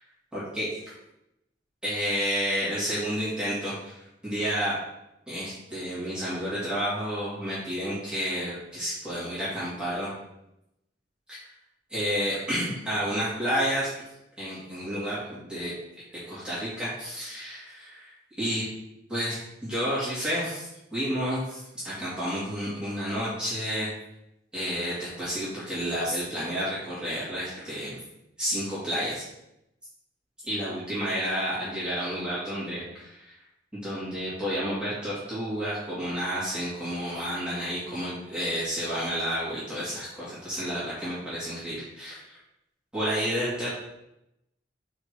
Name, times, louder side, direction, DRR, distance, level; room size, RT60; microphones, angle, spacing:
voice 1, 0.3-0.7 1.8-4.8 5.3-10.1 11.3-11.4 11.9-13.9 14.4-15.7 16.3-18.6 19.1-23.9 24.5-28.0 28.4-29.2 30.4-33.3 33.7-42.4 42.9-43.7, equal, 5° right, -11 dB, 2.3 m, -30 dB
4.8 x 4.3 x 6.0 m, 0.85 s
head